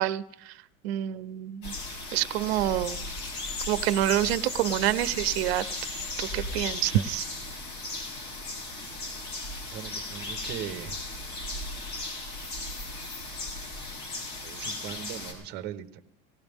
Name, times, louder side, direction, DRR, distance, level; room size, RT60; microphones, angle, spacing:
voice 1, 0.0-1.7 2.1-3.0 3.7-5.6 6.2-7.3, right 14 dB, 90° right, 14 dB, 0.7 m, -27 dB
sound 1, 1.6-15.3, left 2 dB, 50° left, 6.2 m, -36 dB
voice 2, 9.6-11.0 14.4-16.0, right 10 dB, 35° right, 8 dB, 0.9 m, -39 dB
19.5 x 16.5 x 3.5 m, 0.75 s
supercardioid pair, 175°, 30 cm